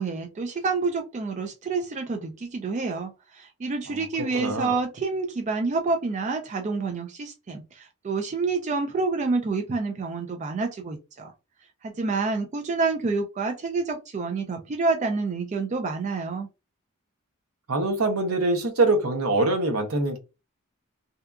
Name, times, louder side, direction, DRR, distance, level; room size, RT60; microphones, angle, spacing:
voice 1, 0.0-11.3 11.8-16.5, right 4 dB, 35° right, 0.3 m, -28 dB
voice 2, 4.3-4.8 17.7-20.2, right 2 dB, 75° right, 0.7 m, -24 dB
2.7 x 2.3 x 2.2 m
head